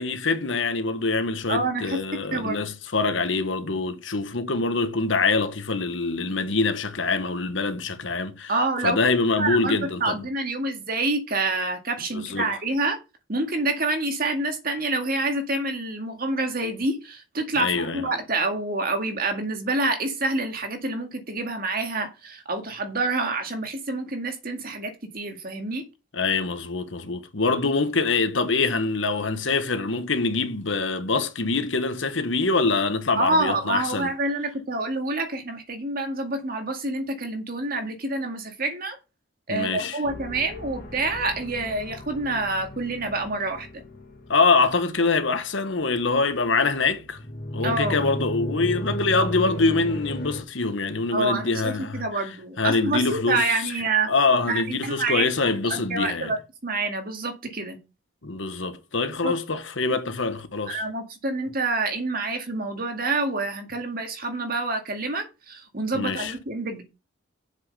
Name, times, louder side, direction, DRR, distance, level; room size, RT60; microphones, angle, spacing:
voice 1, 0.0-8.5 8.8-10.2 12.1-12.5 17.6-18.0 26.1-34.1 39.5-40.0 44.3-47.2 47.5-52.2 52.6-53.7 54.1-56.3 58.2-60.8 65.9-66.3, left 3 dB, 70° left, 1.3 m, -24 dB
voice 2, 1.5-2.0 2.3-2.6 8.5-9.0 9.4-13.0 13.3-25.8 33.2-39.0 39.5-43.8 47.6-48.0 51.1-54.1 54.5-55.3 55.6-57.8 59.2-59.3 60.7-66.8, right 2 dB, 50° right, 2.1 m, -27 dB
sound 1, 40.0-50.4, left 1 dB, 50° left, 1.9 m, -35 dB
7.5 x 6.3 x 6.6 m
head